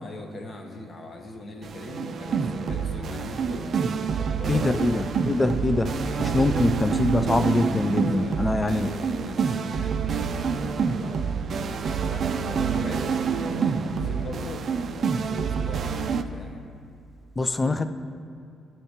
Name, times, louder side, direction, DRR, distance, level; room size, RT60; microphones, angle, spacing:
voice 1, 0.0-3.7 4.1-4.9 8.1-11.4 12.0-14.6 15.2-15.9 16.3-16.6 17.6-17.9, left 1 dB, 40° left, 3 dB, 1.0 m, -40 dB
sound 1, 1.6-16.2, right 5 dB, 55° right, 0.4 m, -27 dB
voice 2, 4.5-8.9 17.4-17.9, left 2 dB, 20° left, 10 dB, 0.4 m, -24 dB
12.0 x 4.5 x 2.9 m, 2.4 s
cardioid pair, 90°, 0 cm